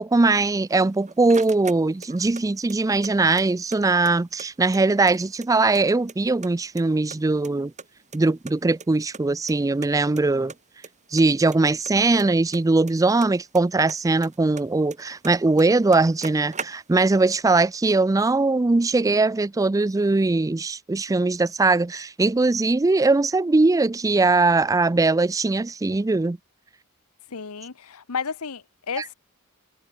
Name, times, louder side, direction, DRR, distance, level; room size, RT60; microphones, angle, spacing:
voice 1, 0.0-7.7 8.1-10.5 11.1-26.4 29.0-29.1, right 3 dB, 15° right, 0.4 m, -21 dB
sound 1, 0.7-2.4 2.7-3.8 4.1-4.2 4.4-5.8 6.1-6.8 7.1-8.5 8.8-8.9 9.1-9.2 9.5-9.6 9.8-10.2 10.5-10.9 11.2-13.6 13.9-15.3 15.6-15.7 15.9-17.1, right 5 dB, 35° right, 5.7 m, -39 dB
voice 2, 27.3-29.1, left 5 dB, 80° left, 1.0 m, -32 dB
head